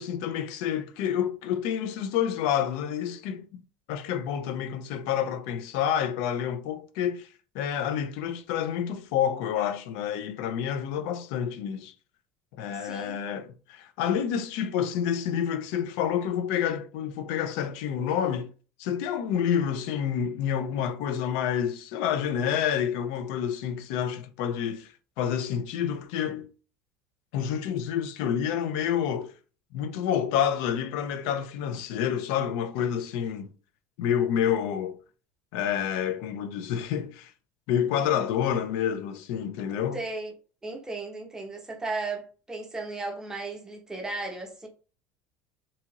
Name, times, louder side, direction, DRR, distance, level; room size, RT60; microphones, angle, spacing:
voice 1, 0.0-3.5 3.9-7.3 7.5-11.9 12.6-18.5 18.8-26.5 27.3-29.3 29.7-33.5 34.0-35.0 35.5-37.3 37.7-40.0, left 9 dB, 75° left, 0.4 m, -28 dB
voice 2, 12.7-13.2 39.9-40.3 40.6-44.7, right 3 dB, 10° right, 0.7 m, -35 dB
2.7 x 2.4 x 2.8 m
cardioid pair, 140°, 6 cm